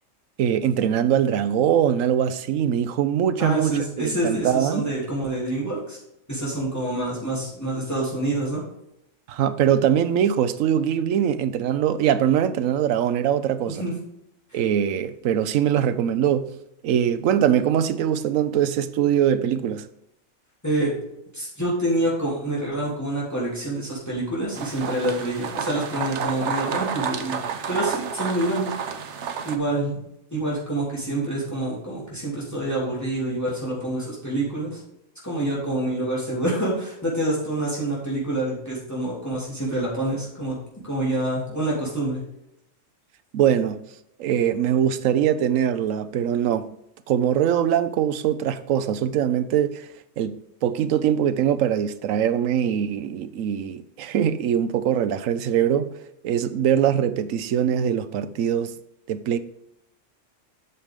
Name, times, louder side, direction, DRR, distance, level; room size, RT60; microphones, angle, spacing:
voice 1, 0.4-4.9 9.3-13.8 14.5-16.5 16.8-19.9 43.3-43.8 44.2-46.7 47.1-49.9 50.2-50.4 50.6-55.9 56.2-58.7 59.1-59.4, right 9 dB, 80° right, 13 dB, 1.0 m, -22 dB
voice 2, 3.4-6.0 6.3-8.6 13.8-13.9 14.5-14.6 20.6-21.0 21.3-28.7 29.4-30.0 30.3-34.8 35.2-40.6 40.8-42.2, right 1 dB, 10° left, -6 dB, 3.0 m, -27 dB
sound 1, 24.5-29.6, right 7 dB, 65° right, 1.1 m, -30 dB
8.3 x 6.5 x 3.6 m, 0.81 s
omnidirectional pair, 1.4 m